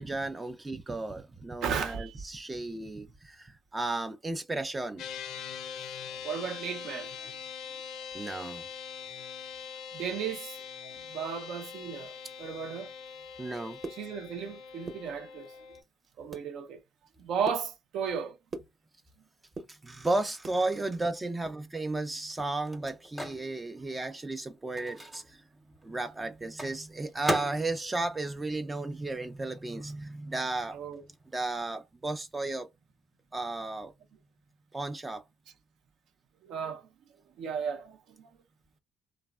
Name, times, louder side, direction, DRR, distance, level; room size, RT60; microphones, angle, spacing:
voice 1, 0.0-5.0 8.1-8.7 13.4-13.8 19.7-25.4 25.8-30.8 31.3-32.7 33.3-33.9 34.7-35.2, right 2 dB, 15° right, 0.3 m, -34 dB
voice 2, 1.6-2.1 6.2-7.3 9.9-12.1 12.4-12.9 13.9-15.5 16.2-16.8 17.2-18.4 30.7-31.0 36.4-36.9 37.4-38.3, right 7 dB, 75° right, 0.5 m, -35 dB
sound 1, 5.0-15.8, left 7 dB, 75° left, 0.4 m, -43 dB
sound 2, 13.7-14.5 14.8-15.6 16.0-16.5 16.9-19.2 19.4-20.6 21.0-22.5 22.8-22.9 23.3-23.5 23.9-24.1, right 3 dB, 35° right, 0.7 m, -44 dB
Microwave oven, 21.3-29.4 29.7-31.6, equal, ahead, 0.7 m, -40 dB
3.2 x 2.0 x 2.2 m
cardioid pair, 115°, 0 cm